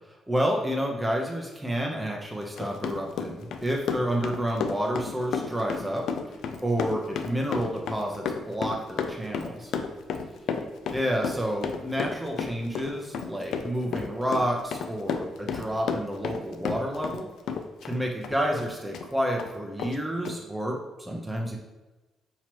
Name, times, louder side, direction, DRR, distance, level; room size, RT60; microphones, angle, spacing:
voice 1, 0.3-6.0 6.6-9.7 10.9-17.3 17.8-21.6, equal, 10° right, 0 dB, 0.6 m, -29 dB
Run, 2.4-17.2 17.5-19.1 19.4-19.5 19.8-19.9 20.2-20.4, left 6 dB, 75° left, 0.4 m, -32 dB
5.9 x 2.9 x 3.0 m, 1.1 s
cardioid pair, 90°, 0 cm